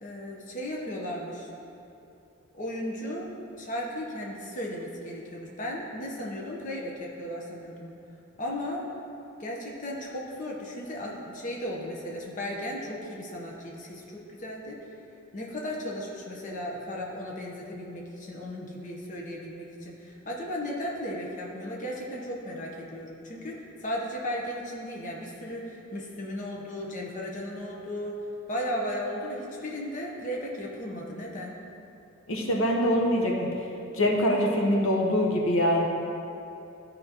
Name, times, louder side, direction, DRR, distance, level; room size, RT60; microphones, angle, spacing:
voice 1, 0.0-1.5 2.5-3.3 3.6-7.9 8.4-8.9 9.4-14.9 15.3-28.2 28.5-31.6, equal, 35° left, -2 dB, 0.9 m, -35 dB
voice 2, 32.3-33.5 33.9-35.9, equal, 70° left, 0 dB, 0.9 m, -24 dB
12.5 x 5.2 x 2.9 m, 2.8 s
head